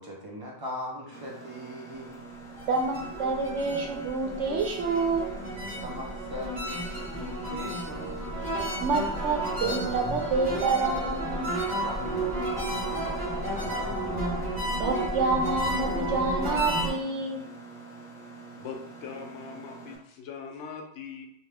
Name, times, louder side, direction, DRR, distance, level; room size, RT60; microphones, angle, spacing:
voice 1, 0.0-2.2 5.8-8.5 11.8-14.5, left 1 dB, 30° right, -3 dB, 0.5 m, -41 dB
Mechanisms, 1.1-20.0, right 3 dB, 5° left, 0.7 m, -46 dB
sound 1, 2.5-16.9, right 1 dB, 45° right, 1.3 m, -32 dB
voice 2, 2.7-5.3 8.8-11.6 14.7-17.4, right 4 dB, 85° right, 2 dB, 1.0 m, -28 dB
voice 3, 18.5-21.3, left 6 dB, 80° left, 3 dB, 0.9 m, -41 dB
2.8 x 2.3 x 3.3 m, 0.77 s
omnidirectional pair, 1.2 m